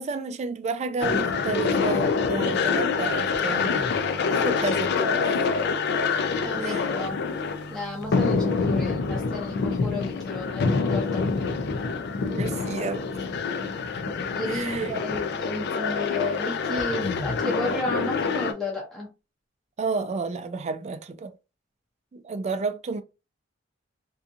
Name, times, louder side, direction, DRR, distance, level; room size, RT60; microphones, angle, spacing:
voice 1, 0.0-5.4 6.6-6.9 12.3-13.2 14.5-15.0 19.8-21.3 22.1-23.0, right 4 dB, 35° right, 0.3 m, -31 dB
sound 1, 1.0-18.5, left 5 dB, 60° left, 0.4 m, -26 dB
voice 2, 6.4-7.2 7.7-11.5 14.3-19.1, left 1 dB, 5° left, 0.7 m, -33 dB
2.6 x 2.5 x 2.4 m
head